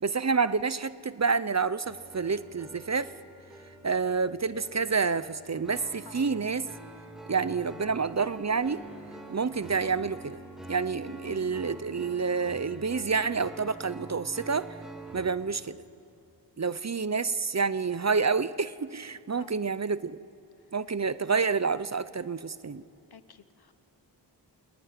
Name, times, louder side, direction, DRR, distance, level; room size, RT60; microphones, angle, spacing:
voice 1, 0.0-3.1 3.8-6.7 7.3-8.8 9.3-10.4 10.7-14.8 15.1-15.8 16.6-20.2 20.7-22.8, right 5 dB, 40° right, 15 dB, 0.8 m, -28 dB
sound 1, 1.8-15.3, right 2 dB, ahead, 4.0 m, -46 dB
voice 2, 23.1-23.7, left 7 dB, 60° left, 12 dB, 1.2 m, -51 dB
28.0 x 19.5 x 9.7 m, 2.8 s
wide cardioid pair, 85°, 43 cm